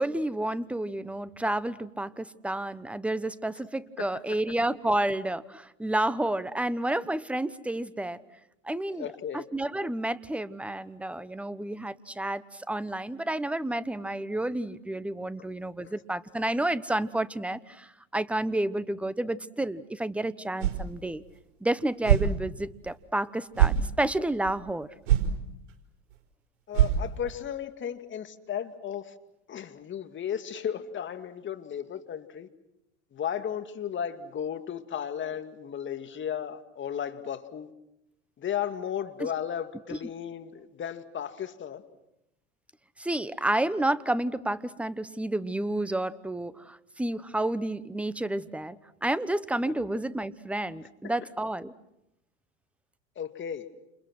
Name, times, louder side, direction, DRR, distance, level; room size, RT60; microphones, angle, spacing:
voice 1, 0.0-8.2 8.6-9.1 9.3-21.2 21.6-24.9 39.2-39.3 39.9-40.0 43.0-51.7, right 1 dB, 5° right, 16 dB, 1.1 m, -30 dB
voice 2, 4.0-4.4 8.9-9.5 15.4-15.5 15.8-16.0 26.7-29.1 29.5-32.5 33.1-37.7 38.4-41.8 49.6-49.7 53.2-53.7, left 9 dB, 30° left, 8 dB, 2.4 m, -35 dB
sound 1, 20.6-20.9 21.3-21.4 22.0-22.3 22.9-23.0 23.5-23.8 24.4-24.5 25.1-25.3 25.7-25.8 26.1-26.2 26.7-27.3, right 11 dB, 70° right, 4.6 m, -23 dB
30.0 x 28.5 x 6.2 m, 0.84 s
hypercardioid pair, 100°, 37 cm